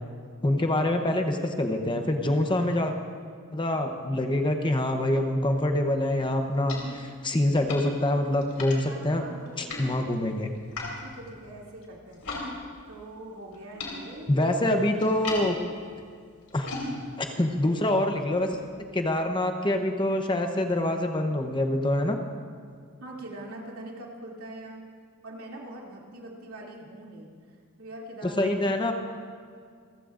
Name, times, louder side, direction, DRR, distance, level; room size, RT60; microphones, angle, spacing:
voice 1, 0.4-2.9 3.5-9.2 9.6-10.5 14.3-15.6 16.5-16.7 17.2-18.6 18.9-22.2 28.4-28.9, left 1 dB, 20° left, 4 dB, 0.9 m, -25 dB
sound 1, 6.0-12.5 12.7-18.6, left 2 dB, 85° left, 3.7 m, -41 dB
voice 2, 8.9-10.2 11.0-12.4 12.9-14.7 23.0-24.8 25.2-28.8, right 1 dB, 70° right, -2 dB, 2.8 m, -43 dB
28.5 x 15.0 x 2.6 m, 2.1 s
head